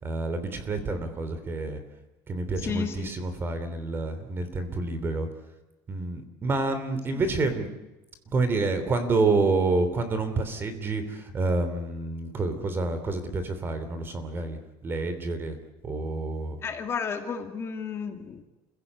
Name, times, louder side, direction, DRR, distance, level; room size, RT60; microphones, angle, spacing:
voice 1, 0.0-1.8 2.3-5.3 5.9-7.7 8.3-15.5 15.8-16.6, right 3 dB, 25° right, 10 dB, 3.2 m, -28 dB
voice 2, 2.6-3.1 16.6-18.5, left 6 dB, 25° left, 5 dB, 2.1 m, -32 dB
28.5 x 16.5 x 8.3 m, 1.1 s
cardioid pair, 155°, 10 cm